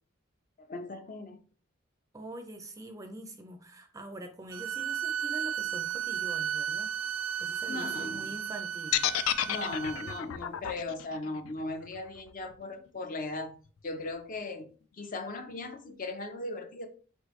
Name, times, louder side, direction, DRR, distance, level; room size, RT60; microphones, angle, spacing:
voice 1, 0.6-1.4 7.7-8.4 9.5-13.5 13.8-14.7 14.9-16.9, left 2 dB, 40° left, 0.6 m, -38 dB
voice 2, 2.1-7.0 7.4-9.0, right 1 dB, 15° right, 0.5 m, -44 dB
sound 1, 4.5-10.2, right 9 dB, 80° right, 0.3 m, -34 dB
sound 2, 8.9-13.0, left 12 dB, 90° left, 0.3 m, -31 dB
4.4 x 3.2 x 3.1 m
head